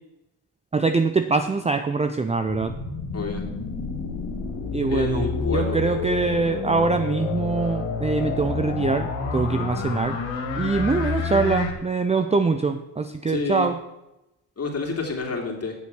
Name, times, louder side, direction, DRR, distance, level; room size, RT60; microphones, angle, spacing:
voice 1, 0.7-2.7 4.7-10.2 10.6-13.8, right 4 dB, 15° right, 8 dB, 0.5 m, -23 dB
sound 1, 2.4-11.7, left 4 dB, 65° left, 1.8 m, -29 dB
voice 2, 4.9-5.8 13.3-13.7 14.6-15.7, left 3 dB, 30° left, 0 dB, 2.8 m, -28 dB
8.3 x 6.9 x 6.1 m, 0.92 s
hypercardioid pair, 50°, 49 cm